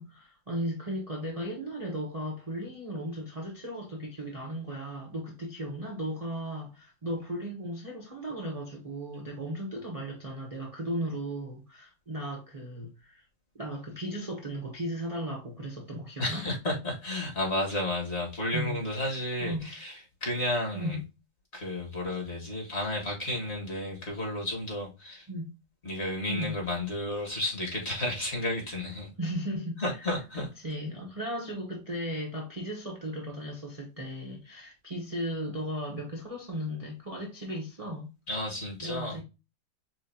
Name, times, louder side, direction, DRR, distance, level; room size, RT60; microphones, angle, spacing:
voice 1, 0.0-13.2 13.5-16.4 18.5-18.8 19.4-19.7 20.7-21.0 25.3-25.5 26.3-26.6 29.2-29.8 30.6-38.1 38.8-39.2, equal, 25° right, 0.9 m, -36 dB
voice 2, 16.2-21.0 21.5-25.3 25.8-29.1 29.8-30.5 38.3-39.2, left 1 dB, 35° left, 1.9 m, -32 dB
6.2 x 2.8 x 2.7 m
omnidirectional pair, 2.0 m